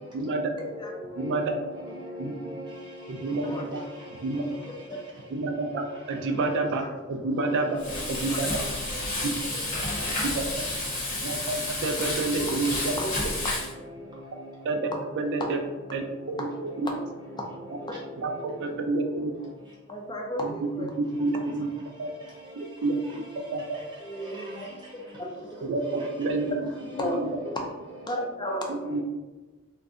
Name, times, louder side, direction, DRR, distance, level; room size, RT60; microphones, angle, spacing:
voice 1, 0.1-0.5 1.2-1.6 2.2-2.3 3.1-3.8 4.2-4.5 5.3-7.8 8.1-8.5 10.2-10.5 11.2-12.7 14.7-14.9 15.2-15.6 15.9-16.0 16.4-16.5 18.2-19.3 20.8-20.9 21.2-21.7 22.0-22.1 22.6-23.0 23.5-23.8 25.7-26.4 28.9-29.0, right 3 dB, 60° right, 4 dB, 0.3 m, -28 dB
voice 2, 1.2-2.6 8.6-8.7 12.6-12.8 13.2-13.4 15.2-15.3 16.9-17.3 17.8-18.0 26.0-26.1 26.9-27.3 28.7-29.0, equal, 20° right, -6 dB, 0.8 m, -39 dB
Frying (food), 7.8-13.7, left 2 dB, 40° left, 0.8 m, -30 dB
voice 3, 19.9-20.9 24.0-25.6 27.0-27.2 28.1-28.6, equal, 20° left, 0 dB, 0.5 m, -34 dB
2.5 x 2.1 x 3.6 m, 1.2 s
head